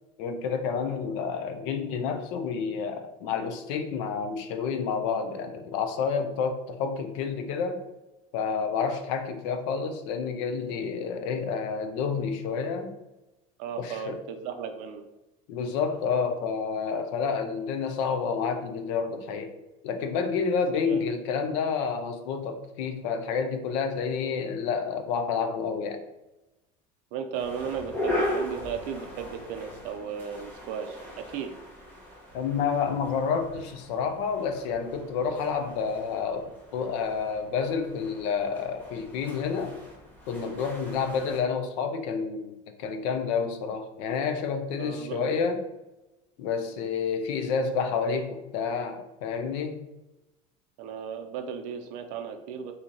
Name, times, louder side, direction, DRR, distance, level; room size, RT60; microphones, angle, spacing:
voice 1, 0.2-7.8 8.3-12.9 13.8-14.2 15.5-19.5 19.8-26.0 32.3-39.7 40.3-45.6 46.4-49.8, left 5 dB, 65° left, 7 dB, 0.5 m, -29 dB
voice 2, 13.6-15.0 20.8-21.0 27.1-31.5 44.8-45.2 50.8-52.7, right 7 dB, 50° right, 6 dB, 0.4 m, -35 dB
sound 1, 27.3-41.4, left 1 dB, 10° left, 0.6 m, -38 dB
2.9 x 2.8 x 3.7 m, 0.99 s
cardioid pair, 180°, 17 cm